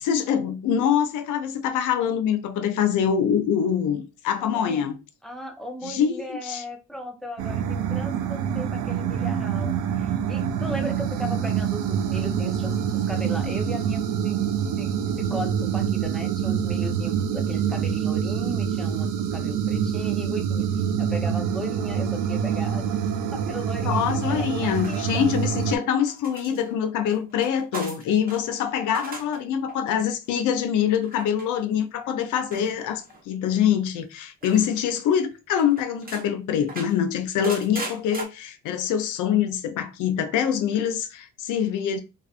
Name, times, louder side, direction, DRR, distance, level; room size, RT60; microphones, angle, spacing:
voice 1, 0.0-5.0 5.8-6.6 23.8-42.0, left 8 dB, 90° left, 0.5 m, -24 dB
voice 2, 4.4-4.9 5.2-14.4 14.8-20.7 21.0-22.9 23.3-25.2, equal, ahead, 0.6 m, -37 dB
sound 1, 7.4-25.8, right 8 dB, 80° right, 0.5 m, -26 dB
sound 2, 24.7-25.7 26.1-28.4 28.8-29.4 29.7-30.1 31.0-31.5 32.5-33.2 34.4-34.7 35.1-35.2 35.6-36.3 36.7-38.3, right 2 dB, 30° right, 0.8 m, -38 dB
2.4 x 2.4 x 2.4 m
cardioid pair, 90°, 30 cm